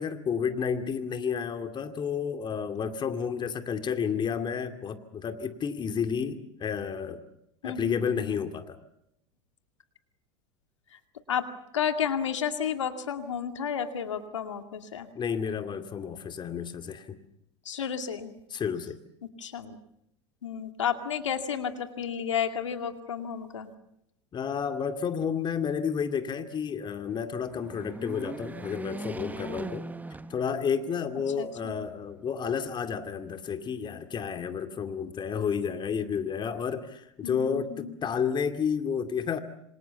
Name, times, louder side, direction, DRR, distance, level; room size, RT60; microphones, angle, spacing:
voice 1, 0.0-7.2 7.6-8.8 15.2-17.2 18.5-19.0 24.3-29.9 30.3-39.4, left 7 dB, 30° left, 8 dB, 2.4 m, -31 dB
voice 2, 7.6-8.4 10.9-11.0 11.3-11.4 11.7-15.1 17.7-18.3 19.4-19.8 20.4-23.7 31.4-31.7 37.2-37.9, left 8 dB, 85° left, 7 dB, 2.3 m, -32 dB
sound 1, 27.3-30.9 31.4-31.5 32.6-33.4, right 3 dB, 10° right, 1.1 m, -40 dB
27.0 x 26.0 x 7.1 m, 0.80 s
hypercardioid pair, 90°, 15 cm